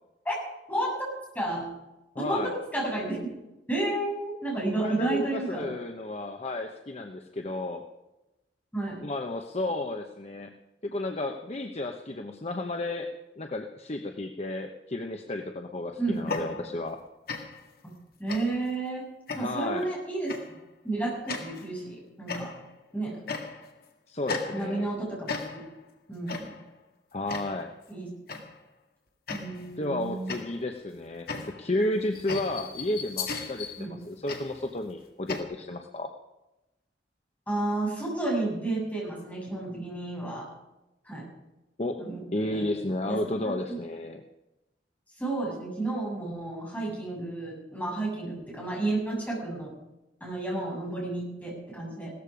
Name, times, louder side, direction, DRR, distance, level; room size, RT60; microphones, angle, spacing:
voice 1, 0.7-1.1 1.3-1.6 2.2-3.2 3.7-5.7 8.7-9.0 16.0-16.4 17.8-17.9 18.2-19.0 19.3-20.6 20.8-22.5 22.9-23.2 24.5-25.6 26.1-26.5 27.9-28.1 29.3-30.3 33.8-33.9 37.5-40.5 41.1-41.3 42.0-42.2 42.5-42.7 43.0-43.2 43.4-43.8 45.2-49.7 50.2-52.1, right 2 dB, 10° left, -4 dB, 7.1 m, -31 dB
voice 2, 2.1-2.5 4.8-7.8 9.0-10.5 10.8-13.1 13.4-17.0 19.3-19.9 24.1-24.9 27.1-27.7 29.8-36.1 41.8-42.0 42.3-44.2, left 1 dB, 35° left, 4 dB, 1.0 m, -32 dB
sound 1, 16.2-17.0 17.3-17.7 18.3-18.7 19.3-19.7 20.3-20.6 21.3-21.7 22.3-22.8 23.3-23.8 24.3-24.9 25.3-25.8 26.3-26.7 27.3-27.7 28.3-28.6 29.3-29.8 30.3-35.4, left 4 dB, 55° left, 1.9 m, -37 dB
17.0 x 14.0 x 5.0 m, 0.97 s
head